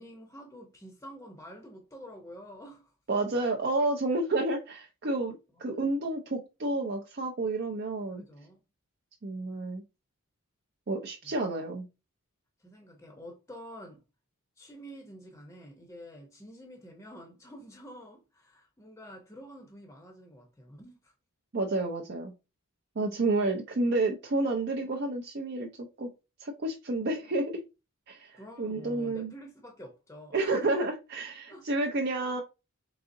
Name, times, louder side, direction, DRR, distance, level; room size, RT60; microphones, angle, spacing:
voice 1, 0.0-2.9 5.6-5.9 8.1-8.6 11.2-11.3 12.6-14.0 14.6-21.1 28.3-30.7 31.5-31.7, equal, 15° left, 0.6 m, -48 dB
voice 2, 3.1-8.2 9.2-9.8 10.9-11.8 21.5-22.3 23.0-26.1 26.4-27.6 28.1-29.3 30.3-32.4, right 2 dB, 50° right, 0.5 m, -30 dB
3.9 x 3.7 x 2.6 m
head